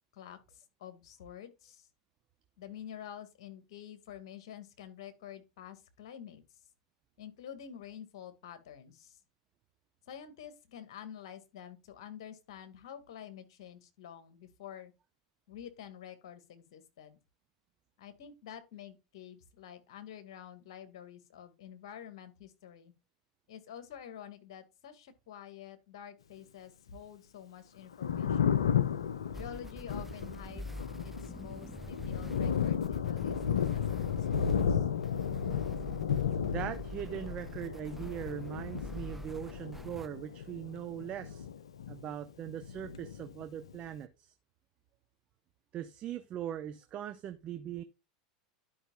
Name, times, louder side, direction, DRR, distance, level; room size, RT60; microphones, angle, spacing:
voice 1, 0.1-1.9 2.6-6.4 7.2-9.2 10.1-14.9 15.5-17.2 18.0-22.9 23.5-28.7 29.3-30.7 31.0-34.9 35.5-35.6, left 9 dB, 65° left, 1.9 m, -49 dB
Thunder, 27.8-42.2 42.5-43.7, left 8 dB, 80° left, 0.6 m, -33 dB
sound 1, 29.3-40.1, right 1 dB, 5° right, 0.5 m, -45 dB
voice 2, 36.4-41.5 41.9-44.3 45.7-47.8, right 10 dB, 40° right, 0.8 m, -40 dB
12.5 x 5.4 x 2.4 m
hypercardioid pair, 90°, 3 cm